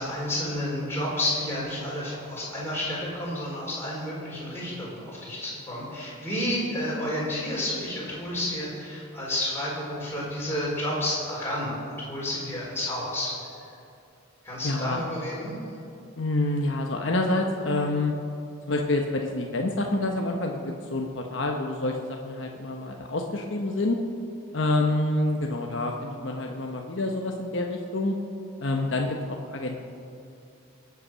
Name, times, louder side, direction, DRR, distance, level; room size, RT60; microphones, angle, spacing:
voice 1, 0.0-13.3 14.4-15.6, left 1 dB, 10° left, -7 dB, 4.5 m, -30 dB
voice 2, 14.6-15.0 16.2-18.1 18.7-24.0 24.5-28.1 28.6-29.9, left 2 dB, 60° left, 1 dB, 1.0 m, -27 dB
22.0 x 8.4 x 6.3 m, 2.6 s
head